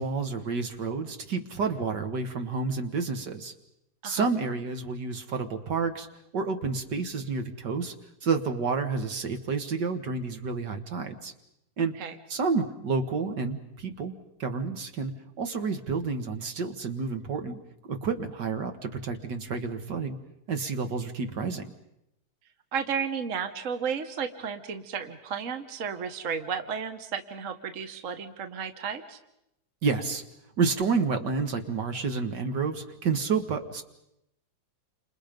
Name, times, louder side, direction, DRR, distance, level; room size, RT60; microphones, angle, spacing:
voice 1, 0.0-3.5 4.0-6.1 6.3-7.9 8.2-11.3 11.8-11.9 12.3-14.1 14.4-20.2 20.5-21.6 29.8-30.2 30.6-33.8, right 4 dB, 60° right, 7 dB, 2.2 m, -30 dB
voice 2, 22.7-29.2, right 6 dB, 45° right, 8 dB, 1.5 m, -33 dB
29.5 x 27.0 x 5.3 m, 0.81 s
omnidirectional pair, 2.1 m